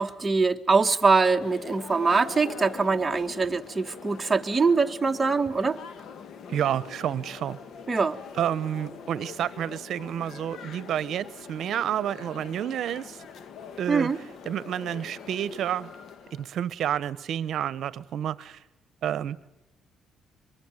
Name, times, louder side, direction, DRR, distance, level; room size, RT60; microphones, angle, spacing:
voice 1, 0.0-5.8 7.9-8.2 13.9-14.2, right 4 dB, 25° right, 6 dB, 1.3 m, -23 dB
sound 1, 1.4-16.5, left 6 dB, 65° left, 1.6 m, -43 dB
voice 2, 6.5-7.6 8.4-13.2 13.8-14.1 14.5-15.9 16.3-18.6 19.0-19.5, right 10 dB, 70° right, 18 dB, 0.9 m, -30 dB
23.0 x 21.5 x 9.1 m, 0.89 s
cardioid pair, 90°, 0 cm